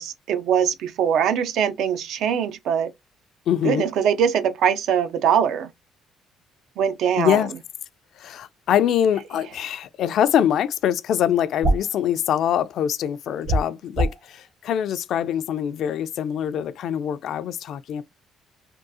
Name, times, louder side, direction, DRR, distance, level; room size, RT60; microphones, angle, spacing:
voice 1, 0.0-2.9 3.6-5.7 6.8-7.4, right 8 dB, 70° right, 0.4 m, -22 dB
voice 2, 3.5-3.9 7.1-7.5 8.2-18.0, left 10 dB, 65° left, 0.3 m, -24 dB
sound 1, 11.6-11.9 13.4-14.2, right 1 dB, 55° right, 1.2 m, -22 dB
3.6 x 2.3 x 2.6 m
cardioid pair, 110°, 0 cm